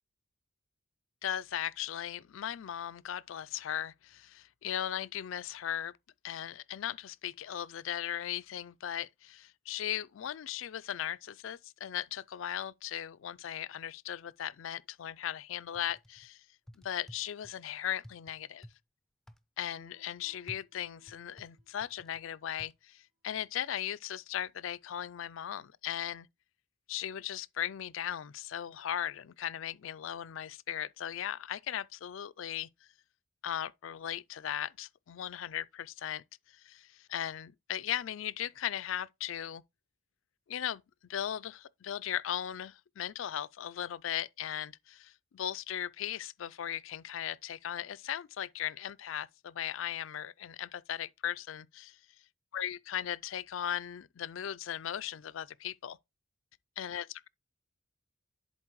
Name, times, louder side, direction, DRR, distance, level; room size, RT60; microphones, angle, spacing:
voice 1, 1.2-5.9 6.2-16.4 16.8-18.7 19.6-26.3 26.9-32.7 33.4-36.2 36.5-39.6 40.5-40.8 41.1-52.0 52.5-56.0 56.8-57.3, left 10 dB, 75° left, 0.4 m, -37 dB
sound 1, 15.7-16.3 16.7-17.6 18.0-18.8 19.3-19.4 20.5-22.2 22.6-22.7, equal, ahead, 0.4 m, -52 dB
Piano, 19.7-22.0, left 1 dB, 40° right, 2.7 m, -66 dB
11.0 x 4.3 x 3.1 m
head